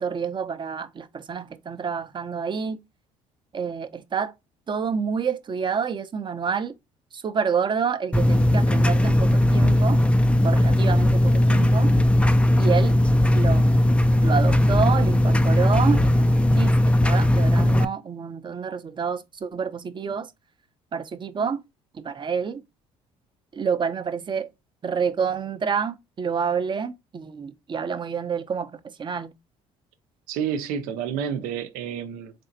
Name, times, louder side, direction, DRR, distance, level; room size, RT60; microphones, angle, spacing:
voice 1, 0.0-2.8 3.5-4.3 4.7-6.7 7.1-10.0 10.4-11.9 12.6-13.0 13.3-13.9 14.2-16.7 17.0-20.3 20.9-21.6 21.9-22.6 23.5-24.5 24.8-29.3, right 6 dB, 35° right, 0.7 m, -28 dB
sound 1, 8.1-17.8, left 1 dB, 10° left, 0.4 m, -18 dB
voice 2, 30.3-32.3, right 8 dB, 80° right, 0.7 m, -29 dB
4.0 x 3.4 x 2.7 m
supercardioid pair, 70°, 14 cm